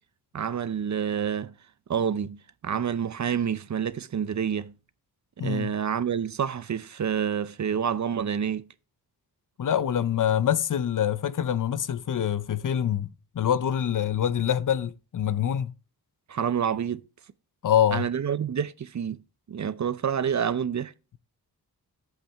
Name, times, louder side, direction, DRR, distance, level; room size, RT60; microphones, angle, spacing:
voice 1, 0.3-1.5 1.9-4.7 5.4-8.6 16.3-17.0 17.9-19.2 19.5-20.9, right 8 dB, 50° right, 0.6 m, -28 dB
voice 2, 5.4-5.7 9.6-15.7 17.6-18.1, left 9 dB, 55° left, 0.6 m, -25 dB
8.6 x 8.1 x 3.5 m
wide cardioid pair, 90°, 37 cm